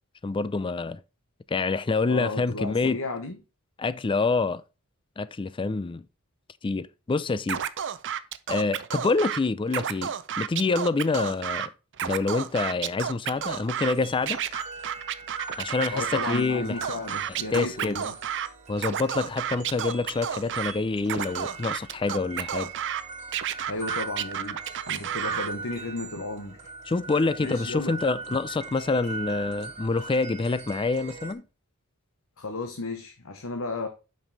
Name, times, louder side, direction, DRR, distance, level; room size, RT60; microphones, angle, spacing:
voice 1, 0.2-1.0 1.5-3.0 3.8-4.6 5.2-6.0 6.6-7.6 8.5-11.7 12.0-14.4 15.6-16.8 17.5-18.0 18.7-22.7 26.9-31.4, left 3 dB, 25° left, 0.4 m, -27 dB
voice 2, 2.1-3.4 15.9-18.2 23.7-26.7 27.4-28.0 32.4-33.9, left 3 dB, 65° left, 1.1 m, -34 dB
Scratching (performance technique), 7.5-9.4 9.7-11.7 11.9-13.9 14.3-16.4 16.8-18.5 18.8-20.7 21.1-23.0 23.3-25.5, right 9 dB, 55° right, 0.6 m, -31 dB
sound 1, 13.4-31.3, right 4 dB, 30° right, 2.7 m, -41 dB
9.0 x 5.4 x 4.0 m
head